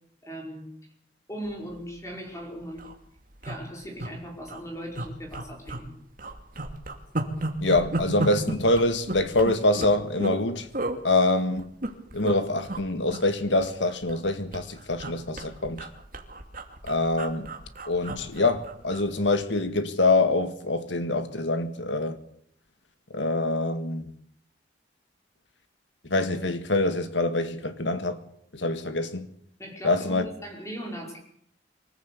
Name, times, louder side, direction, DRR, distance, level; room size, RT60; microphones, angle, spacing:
voice 1, 0.2-0.7 1.3-2.9 3.4-6.0 29.6-31.2, equal, 15° left, 5.2 m, -38 dB
sound 1, 2.0-2.1 2.4-2.5 2.7-2.9 3.4-4.1 4.4-4.6 4.9-5.9 6.2-10.4 10.7-11.0 11.6-12.3 12.6-12.8 13.1-14.2 14.5-19.1 19.4-19.6, right 2 dB, 50° right, 2.7 m, -33 dB
voice 2, 7.6-10.7 11.0-11.7 12.1-15.9 16.8-17.5 17.9-22.2 23.1-24.1 26.0-28.2 28.5-29.3 29.8-30.3, left 2 dB, 80° left, 2.0 m, -25 dB
25.0 x 14.5 x 8.5 m
head